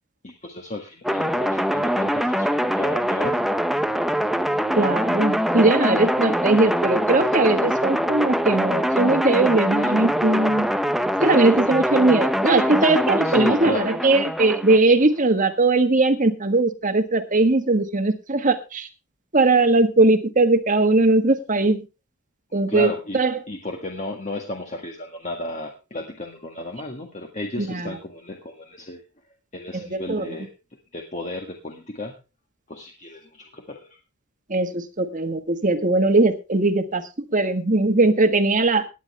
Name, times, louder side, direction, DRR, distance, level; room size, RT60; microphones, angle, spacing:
voice 1, 0.2-3.5 13.2-13.9 22.7-23.2 23.5-29.0 29.5-30.5 30.9-32.2 32.7-34.0, left 1 dB, 35° left, 2 dB, 1.8 m, -33 dB
sound 1, 1.0-14.8, equal, ahead, 0.7 m, -23 dB
voice 2, 4.7-10.7 11.2-18.9 19.3-21.8 22.5-23.3 27.6-27.9 29.7-30.2 34.5-37.0 37.3-38.8, right 2 dB, 35° right, 8 dB, 1.5 m, -20 dB
18.5 x 10.0 x 3.4 m, 0.29 s
head